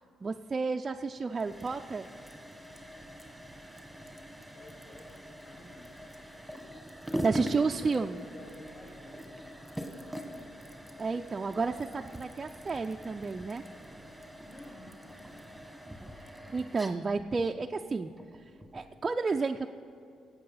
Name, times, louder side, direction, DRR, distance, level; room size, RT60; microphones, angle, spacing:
voice 1, 0.2-2.1 7.2-8.2 11.0-13.6 16.5-18.1 18.7-19.7, right 4 dB, 30° right, 4 dB, 0.4 m, -31 dB
sound 1, 1.2-19.0, equal, ahead, 1.5 m, -43 dB
voice 2, 4.5-6.3 6.6-6.9 7.2-10.4 14.5-15.5, left 1 dB, 55° left, -4 dB, 2.2 m, -53 dB
18.0 x 7.8 x 5.6 m, 2.7 s
cardioid pair, 90°, 0 cm